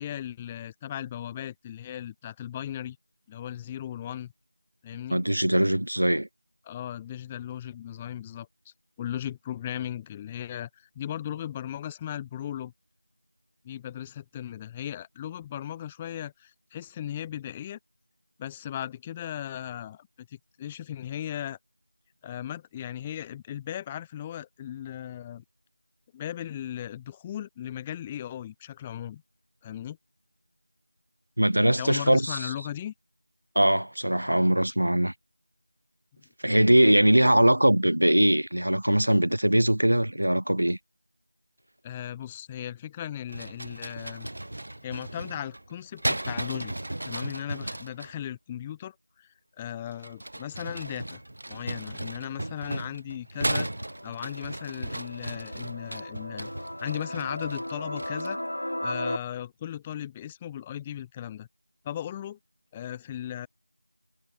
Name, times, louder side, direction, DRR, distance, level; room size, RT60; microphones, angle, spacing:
voice 1, 0.0-3.0 3.3-4.3 4.8-5.2 6.7-8.5 9.0-12.7 13.6-17.8 18.4-21.6 22.2-25.4 26.1-29.2 29.6-30.0 31.8-32.9 41.8-44.3 44.8-46.7 47.0-51.2 51.5-53.7 54.0-56.5 56.8-58.4 58.8-61.5 61.8-62.4 62.7-63.5, left 11 dB, 10° left, 0.5 m, -37 dB
voice 2, 5.1-6.3 31.4-32.5 33.6-35.1 36.4-40.8, right 1 dB, 85° right, 0.6 m, -21 dB
sound 1, 43.3-48.1 49.9-58.5, right 1 dB, 60° right, 1.6 m, -35 dB
sound 2, 53.6-59.2, left 1 dB, 85° left, 0.8 m, -36 dB
figure-of-eight pair, 175°, 0 cm